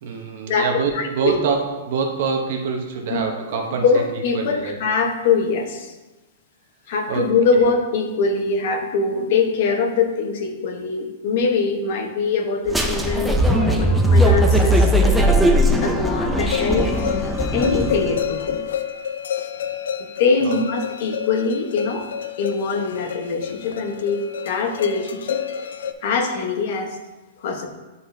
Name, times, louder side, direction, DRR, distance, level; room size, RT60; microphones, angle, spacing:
voice 1, 0.0-4.0 4.3-4.8 7.1-7.7 15.8-16.1 20.4-20.6, right 5 dB, 50° right, 2 dB, 0.8 m, -25 dB
voice 2, 0.9-1.4 3.1-3.2 3.8-5.9 6.9-14.9 15.8-16.9 17.5-18.6 20.0-22.1 22.4-25.4 26.0-27.0 27.4-27.7, left 4 dB, 45° left, 4 dB, 0.9 m, -22 dB
sound 1, 12.7-18.3, equal, ahead, 0.4 m, -18 dB
sound 2, 16.5-25.9, left 9 dB, 85° left, 0.4 m, -29 dB
9.9 x 4.1 x 2.6 m, 1.1 s
supercardioid pair, 170°, 0 cm